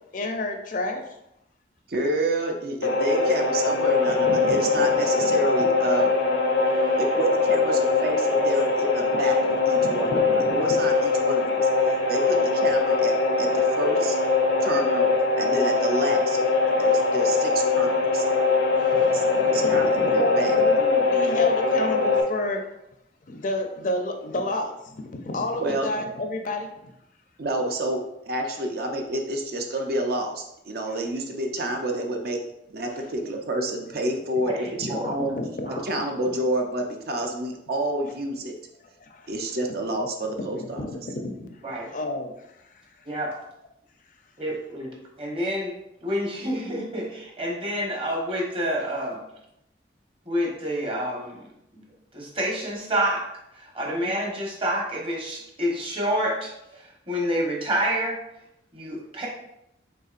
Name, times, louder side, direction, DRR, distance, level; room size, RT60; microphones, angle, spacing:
voice 1, 0.1-1.1 4.2-5.3 6.6-7.0 9.7-10.8 18.6-22.6 23.3-26.9 34.8-35.8 39.0-39.3 40.4-42.6, left 2 dB, 45° left, 4 dB, 0.5 m, -31 dB
voice 2, 1.9-6.1 7.0-10.2 10.5-14.2 14.6-18.2 19.1-20.6 25.6-25.9 27.4-32.4 32.7-35.4 35.8-38.6 39.3-40.9, right 1 dB, 55° right, 3 dB, 0.5 m, -29 dB
sound 1, 2.8-22.2, left 4 dB, 85° left, 0.7 m, -22 dB
voice 3, 34.5-35.1 35.7-35.8 41.6-41.9 43.0-43.3 44.4-45.7 46.0-49.2 50.3-51.4 51.7-51.8 52.1-53.2 53.5-58.2 58.7-59.3, equal, 30° right, -1 dB, 0.9 m, -28 dB
5.4 x 3.6 x 2.5 m, 0.83 s
head